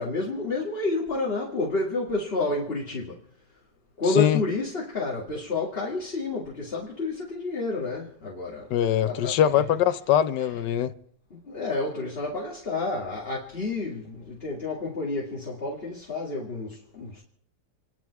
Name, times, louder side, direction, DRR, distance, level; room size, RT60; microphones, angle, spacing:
voice 1, 0.0-3.2 4.0-8.7 9.0-9.4 11.3-17.2, left 3 dB, 35° left, 2.3 m, -30 dB
voice 2, 8.7-10.9, left 10 dB, 75° left, 1.4 m, -22 dB
28.0 x 10.5 x 4.7 m
omnidirectional pair, 1.9 m